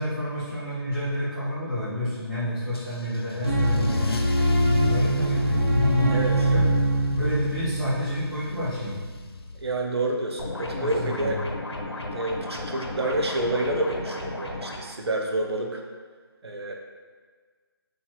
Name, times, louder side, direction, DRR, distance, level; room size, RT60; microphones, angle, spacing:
voice 1, 0.0-4.1 4.6-6.2 6.5-6.6 7.1-9.0 10.8-11.3, left 1 dB, ahead, -23 dB, 0.5 m, -29 dB
Car / Engine starting / Accelerating revving vroom, 2.7-9.9, left 3 dB, 70° left, 0.5 m, -36 dB
sound 1, 3.4-8.7, right 1 dB, 25° right, 0.8 m, -23 dB
voice 2, 6.1-6.5 9.5-11.4 12.1-15.8 16.4-16.7, right 2 dB, 80° right, 1 dB, 0.7 m, -28 dB
sound 2, 10.4-14.8, left 2 dB, 85° left, 0.9 m, -34 dB
5.6 x 3.1 x 2.9 m, 1.5 s
hypercardioid pair, 175°, 13 cm